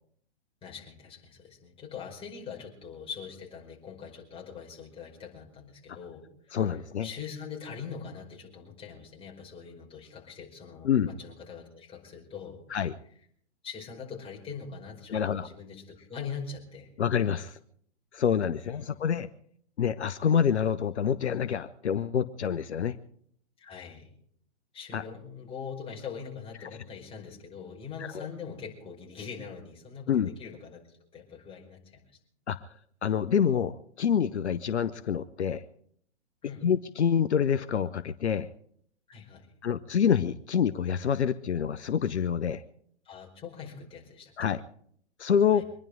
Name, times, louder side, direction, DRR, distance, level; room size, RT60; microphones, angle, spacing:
voice 1, 0.6-6.8 7.0-12.6 13.6-16.9 18.6-19.2 23.6-24.1 24.7-30.8 31.1-32.0 36.4-36.6 39.1-39.5 43.1-44.5 45.5-45.6, left 6 dB, 15° left, -2 dB, 5.0 m, -42 dB
voice 2, 6.5-7.1 10.8-11.1 12.7-12.9 15.1-15.5 17.0-17.6 18.1-19.3 19.8-23.0 24.9-25.0 28.1-28.3 30.1-30.3 32.5-32.6 33.0-35.6 36.6-38.5 39.6-42.6 44.4-44.6 45.2-45.6, left 8 dB, 70° left, 12 dB, 0.9 m, -27 dB
25.0 x 11.0 x 5.1 m, 0.63 s
figure-of-eight pair, 120°, 35 cm